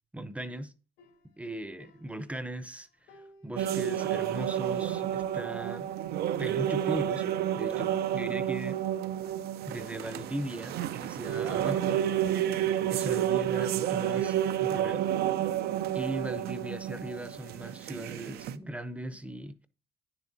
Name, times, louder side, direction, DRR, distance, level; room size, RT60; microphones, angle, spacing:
voice 1, 0.1-0.7 1.4-2.9 3.4-5.9 6.4-7.2 7.6-8.8 9.7-12.0 12.9-15.0 15.9-19.6, right 1 dB, 10° right, 0.7 m, -38 dB
sound 1, 1.0-2.7 3.1-6.4 6.6-6.7 6.9-7.5 8.0-10.0 10.4-12.1, equal, 90° left, 2.7 m, -59 dB
sound 2, 3.6-18.6, right 11 dB, 70° right, 0.6 m, -30 dB
9.6 x 7.2 x 2.7 m
cardioid pair, 110°, 17 cm